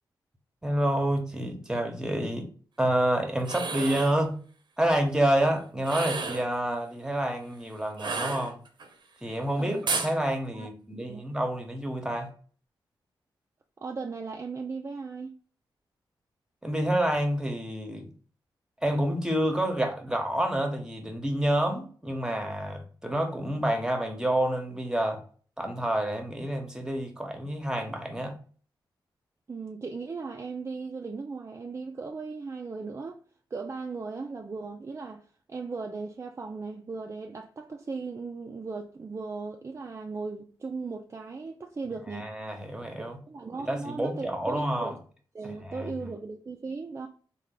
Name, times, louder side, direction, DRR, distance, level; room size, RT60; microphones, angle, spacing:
voice 1, 0.6-2.5 2.8-4.4 4.8-8.6 9.2-12.3 16.6-18.1 18.8-25.2 25.6-28.4 42.1-43.2 43.6-45.0 45.4-45.9, right 1 dB, 10° right, 0.9 m, -28 dB
sound 1, 3.4-4.2 5.8-6.5 8.0-8.9 9.9-10.1, right 4 dB, 60° right, 0.7 m, -32 dB
voice 2, 10.5-11.2 13.8-15.4 29.5-33.2 33.5-42.3 43.0-44.9 45.3-47.1, right 4 dB, 30° right, 0.4 m, -37 dB
3.3 x 2.3 x 3.9 m
cardioid pair, 65°, 9 cm